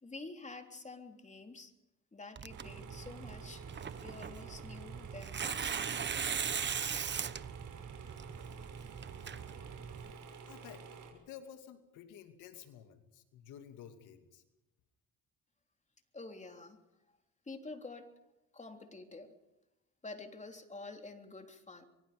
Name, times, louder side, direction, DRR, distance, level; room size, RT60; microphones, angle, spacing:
voice 1, 0.0-1.7 2.1-3.7 4.0-6.0 16.1-16.8 17.5-18.1 18.5-19.4 20.0-21.9, left 3 dB, 25° left, 5 dB, 3.5 m, -48 dB
Tearing, 2.4-10.1, right 7 dB, 35° right, 1.1 m, -40 dB
sound 1, 2.5-11.1, right 5 dB, 80° right, 6.2 m, -51 dB
voice 2, 10.5-14.4, left 9 dB, 90° left, 7 dB, 2.6 m, -52 dB
24.5 x 23.5 x 5.2 m, 0.98 s
cardioid pair, 90°, 30 cm